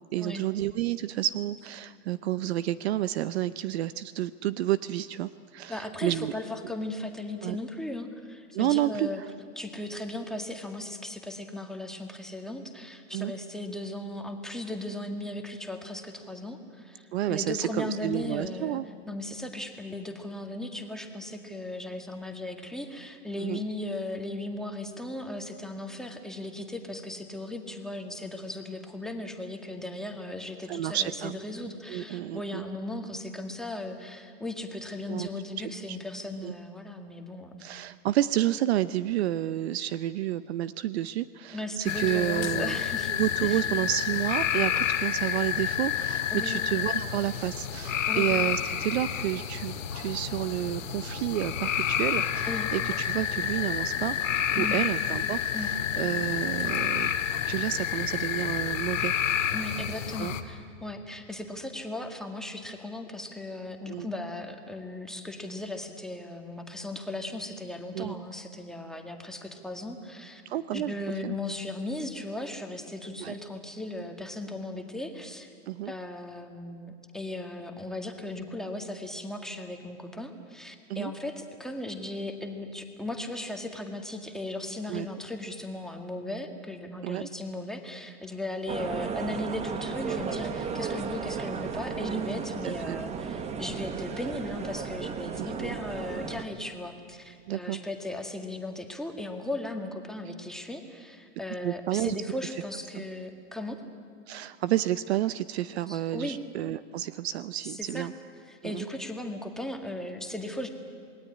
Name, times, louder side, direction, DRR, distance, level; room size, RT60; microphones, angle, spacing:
voice 1, 0.1-6.3 7.4-7.6 8.5-9.1 13.1-13.3 17.1-18.8 23.4-23.6 30.7-31.4 31.9-32.6 35.1-35.3 35.6-35.7 36.4-36.5 37.6-42.7 43.1-54.2 54.6-57.1 57.5-59.1 60.2-60.3 63.9-64.1 67.9-68.2 70.5-70.9 71.2-71.3 73.2-73.3 75.7-75.9 80.9-81.1 84.9-85.1 87.0-87.3 92.6-93.0 95.4-95.8 97.5-97.8 101.6-102.2 102.9-103.0 104.3-108.1 108.6-108.8, right 13 dB, 55° right, 16 dB, 0.7 m, -30 dB
voice 2, 5.7-9.2 9.6-18.8 19.1-37.6 41.5-43.1 43.4-43.6 46.3-46.6 48.1-48.3 52.5-52.7 54.5-54.9 55.5-55.7 59.5-70.4 70.7-75.5 75.9-103.8 105.9-106.4 107.7-108.1 108.4-110.7, left 1 dB, ahead, 4 dB, 1.9 m, -37 dB
sound 1, 41.8-60.4, left 9 dB, 85° left, 2.4 m, -29 dB
sound 2, 88.7-96.4, right 6 dB, 15° right, 1.3 m, -34 dB
28.0 x 19.5 x 9.9 m, 2.4 s
hypercardioid pair, 140°, 38 cm